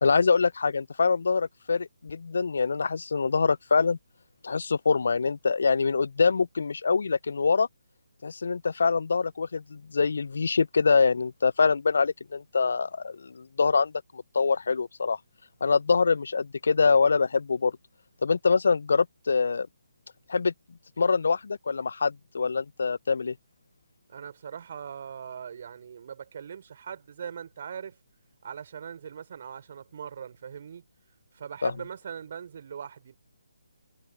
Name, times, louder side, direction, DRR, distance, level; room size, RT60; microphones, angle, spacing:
voice 1, 0.0-4.0 4.4-7.7 8.2-15.2 15.6-17.7 18.2-19.7 20.3-20.5 21.0-23.3 31.6-31.7, left 5 dB, 60° left, 0.4 m, -24 dB
voice 2, 24.1-28.0 28.4-30.8 31.3-33.2, right 7 dB, 45° right, 5.2 m, -40 dB
figure-of-eight pair, 145°, 0 cm